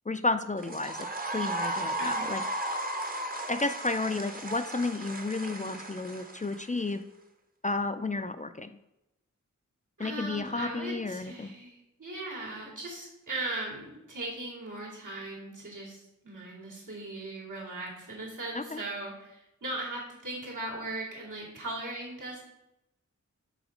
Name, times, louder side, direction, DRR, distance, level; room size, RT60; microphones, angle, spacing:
voice 1, 0.1-2.4 3.5-7.0 7.6-8.8 10.0-11.5 18.5-18.8, left 3 dB, 25° left, 9 dB, 0.3 m, -32 dB
sound 1, 0.6-6.9, right 1 dB, 30° right, 0.8 m, -35 dB
voice 2, 2.0-2.3 10.0-22.4, right 2 dB, 80° right, -5 dB, 2.6 m, -38 dB
6.1 x 4.1 x 5.0 m, 0.90 s
wide cardioid pair, 70°, 30 cm